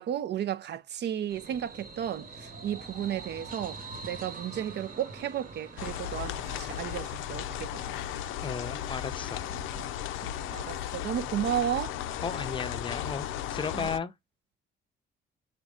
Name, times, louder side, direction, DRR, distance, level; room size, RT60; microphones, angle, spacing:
voice 1, 0.0-7.9 9.5-9.9 10.2-12.0 13.7-13.9, right 10 dB, 60° right, 0.5 m, -34 dB
sound 1, 1.3-7.1, right 3 dB, 45° right, 1.1 m, -44 dB
sound 2, 2.4-10.3, right 3 dB, 25° right, 1.0 m, -57 dB
sound 3, 5.8-14.0, left 11 dB, 90° left, 0.4 m, -35 dB
voice 2, 8.4-9.4 12.2-13.3 13.5-14.1, left 5 dB, 25° left, 0.5 m, -34 dB
6.0 x 2.2 x 3.6 m
cardioid pair, 90°, 20 cm